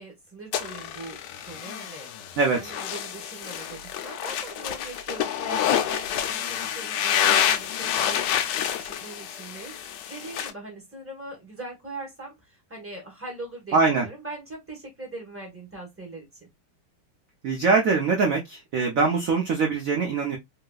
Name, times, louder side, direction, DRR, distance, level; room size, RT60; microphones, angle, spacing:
voice 1, 0.0-2.1 2.5-16.5, right 2 dB, 10° right, 0.7 m, -41 dB
sound 1, 0.5-10.5, left 10 dB, 85° left, 0.9 m, -28 dB
voice 2, 13.7-14.1 17.4-20.4, right 4 dB, 90° right, 0.7 m, -22 dB
3.1 x 2.9 x 2.2 m
omnidirectional pair, 2.4 m